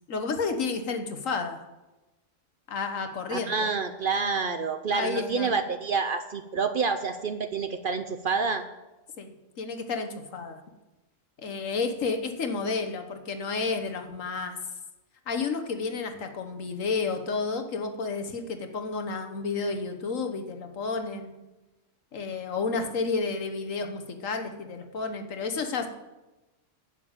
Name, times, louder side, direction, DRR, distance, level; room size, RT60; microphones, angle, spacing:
voice 1, 0.1-1.6 2.7-3.7 4.9-5.5 9.2-10.6 11.4-14.6 15.3-21.3 22.1-25.9, left 4 dB, 85° left, 6 dB, 1.6 m, -31 dB
voice 2, 3.3-8.6, right 5 dB, 50° right, 9 dB, 0.7 m, -28 dB
9.9 x 7.0 x 8.8 m, 1.1 s
omnidirectional pair, 1.3 m